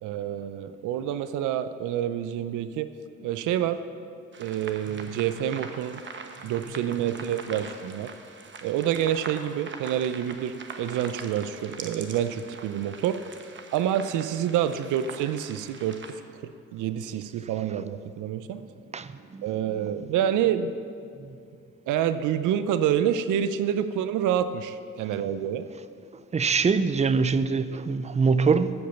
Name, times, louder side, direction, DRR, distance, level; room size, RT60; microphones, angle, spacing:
voice 1, 0.0-2.9 3.2-3.8 4.4-6.0 6.4-8.1 8.6-13.2 13.7-18.6 19.4-20.7 21.9-25.7, right 10 dB, 85° right, 0.5 m, -27 dB
sound 1, 4.3-16.1, right 4 dB, 40° right, 1.0 m, -43 dB
voice 2, 18.9-20.1 20.5-20.8 21.2-21.4 26.3-28.7, right 5 dB, 25° right, 0.5 m, -25 dB
14.0 x 5.3 x 7.0 m
cardioid pair, 90°, 30 cm